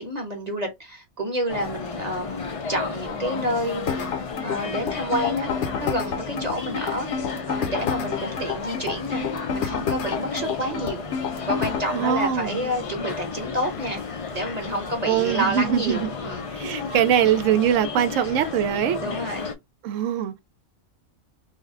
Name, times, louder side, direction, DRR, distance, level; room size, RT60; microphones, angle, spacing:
voice 1, 0.0-3.8 4.4-7.1 7.5-9.2 9.5-11.0 11.5-14.0 14.3-16.5 19.0-19.5, equal, 35° right, 0.9 m, -29 dB
sound 1, 1.5-19.5, left 5 dB, 50° left, 0.4 m, -33 dB
sound 2, 3.9-11.9, left 6 dB, 70° left, 0.9 m, -29 dB
voice 2, 11.9-12.6 15.1-16.1 16.5-19.0 19.8-20.4, right 9 dB, 85° right, 0.9 m, -22 dB
3.2 x 2.1 x 3.6 m
omnidirectional pair, 1.3 m